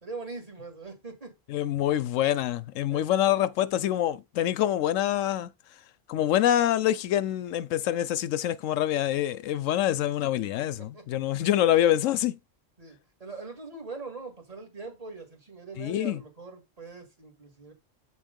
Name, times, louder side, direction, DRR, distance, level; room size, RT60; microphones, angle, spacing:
voice 1, 0.0-1.3 2.9-3.1 10.6-11.0 11.7-11.8 12.8-17.7, right 3 dB, 30° right, 2.0 m, -42 dB
voice 2, 1.5-5.5 6.1-12.4 15.8-16.2, left 12 dB, 80° left, 0.9 m, -25 dB
8.1 x 3.4 x 5.1 m
omnidirectional pair, 1.3 m